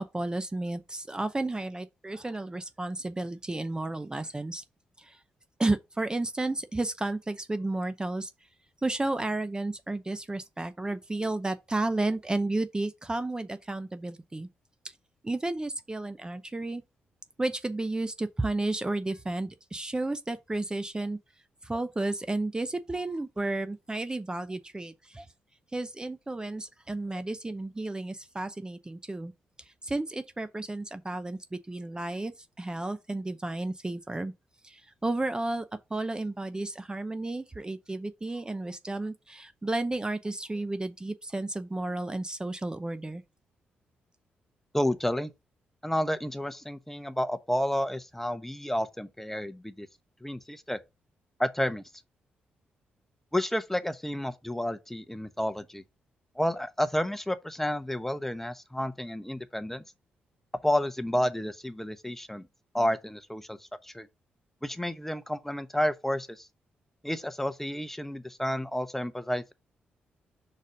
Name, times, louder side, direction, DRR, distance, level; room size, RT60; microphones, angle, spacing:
voice 1, 0.0-4.6 5.0-5.2 5.6-8.3 8.8-14.5 15.2-16.8 17.4-21.2 21.6-25.3 25.7-29.3 29.8-32.3 32.6-34.3 34.6-35.6 35.9-43.2, right 2 dB, 20° right, 0.7 m, -32 dB
voice 2, 44.7-45.3 45.8-49.9 50.2-50.8 51.4-51.8 53.3-55.8 56.4-59.8 60.6-62.5 62.7-64.1 64.6-66.5 67.0-69.5, left 1 dB, 5° left, 0.9 m, -30 dB
5.1 x 4.0 x 5.1 m
supercardioid pair, 50°, 4 cm